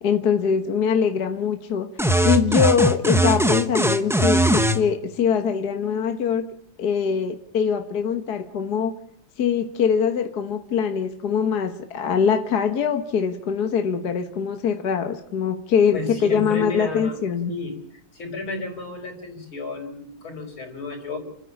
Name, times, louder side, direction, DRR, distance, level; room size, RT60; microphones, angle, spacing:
voice 1, 0.0-1.9 2.2-6.4 6.8-8.9 9.4-17.5, left 7 dB, 55° left, 6 dB, 1.7 m, -23 dB
sound 1, 2.0-4.8, right 1 dB, 5° right, 0.3 m, -19 dB
voice 2, 15.9-17.2 17.5-17.8 18.1-21.2, left 3 dB, 80° left, 3 dB, 5.8 m, -32 dB
30.0 x 10.0 x 9.9 m, 0.71 s
omnidirectional pair, 2.2 m